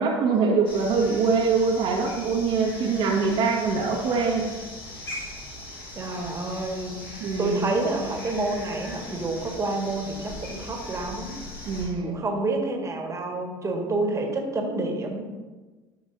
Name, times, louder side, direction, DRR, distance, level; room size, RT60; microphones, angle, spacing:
voice 1, 0.0-4.5 7.2-7.7 11.6-12.2, right 4 dB, 50° right, -2 dB, 1.2 m, -24 dB
sound 1, 0.6-11.9, left 1 dB, 80° left, 1.7 m, -40 dB
voice 2, 5.9-7.0 7.4-15.3, right 2 dB, 25° right, 2 dB, 1.6 m, -29 dB
12.5 x 6.1 x 2.6 m, 1.3 s
figure-of-eight pair, 65°, 12 cm